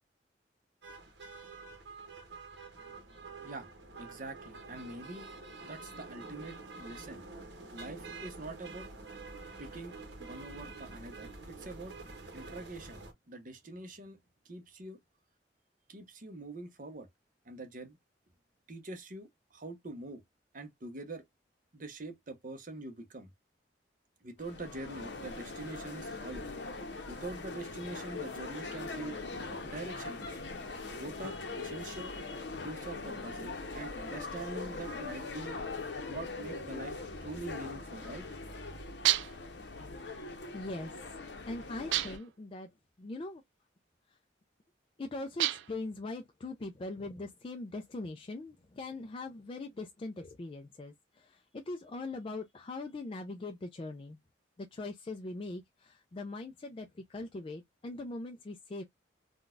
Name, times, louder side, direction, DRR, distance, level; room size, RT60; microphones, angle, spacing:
sound 1, 0.8-13.1, right 3 dB, 70° right, 1.1 m, -47 dB
voice 1, 4.0-5.3 5.6-7.2 7.7-8.9 9.6-9.9 10.2-11.9 12.3-14.2 14.4-15.0 15.9-17.1 17.5-18.0 18.7-20.2 20.5-21.2 21.7-23.3 24.2-26.5 27.1-29.2 29.6-30.4 30.9-32.1 32.6-35.6 36.1-38.2, right 2 dB, 45° right, 0.8 m, -44 dB
sound 2, 24.4-42.2, left 3 dB, 70° left, 0.8 m, -41 dB
sound 3, 39.1-39.5 41.9-42.4 45.4-45.9, right 15 dB, 85° right, 0.3 m, -30 dB
voice 2, 40.5-41.2 41.5-42.7 43.0-43.4 44.1-44.2 45.0-54.2 54.6-58.8, left 2 dB, 30° left, 0.3 m, -41 dB
3.8 x 2.3 x 2.4 m
head